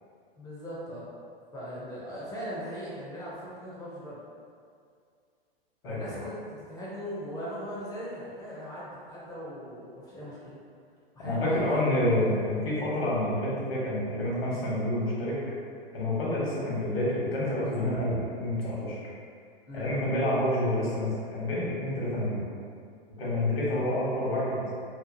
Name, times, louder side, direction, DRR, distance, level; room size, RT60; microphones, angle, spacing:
voice 1, 0.4-1.1 1.5-4.2 5.8-10.6 11.1-12.2 12.5-12.6 19.7-19.9, equal, 15° left, -8 dB, 0.5 m, -39 dB
voice 2, 5.8-6.3 11.2-15.4 15.9-19.0 19.7-22.4 23.2-24.6, left 1 dB, 75° left, -6 dB, 1.1 m, -28 dB
2.8 x 2.3 x 2.5 m, 2.2 s
hypercardioid pair, 105°, 30 cm